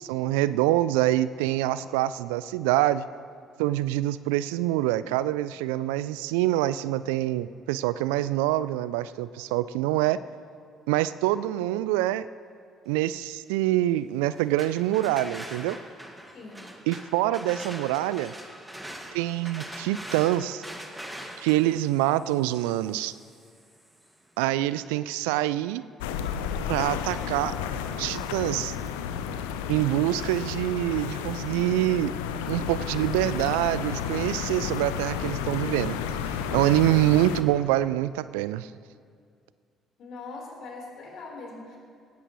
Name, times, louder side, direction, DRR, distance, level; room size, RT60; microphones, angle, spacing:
voice 1, 0.0-3.0 3.6-10.2 10.9-12.3 12.9-15.8 16.9-18.3 19.1-20.6 21.4-23.1 24.4-25.8 26.7-27.5 28.0-28.7 29.7-32.1 32.5-36.0 36.2-38.7, right 15 dB, 75° right, 16 dB, 0.3 m, -25 dB
sound 1, 14.3-24.1, right 1 dB, 5° right, 2.0 m, -43 dB
voice 2, 16.3-16.7 40.0-41.8, left 3 dB, 55° left, -2 dB, 4.0 m, -41 dB
sound 2, 26.0-37.4, left 8 dB, 75° left, 0.7 m, -32 dB
17.5 x 15.5 x 3.1 m, 2.2 s
figure-of-eight pair, 50°, 0 cm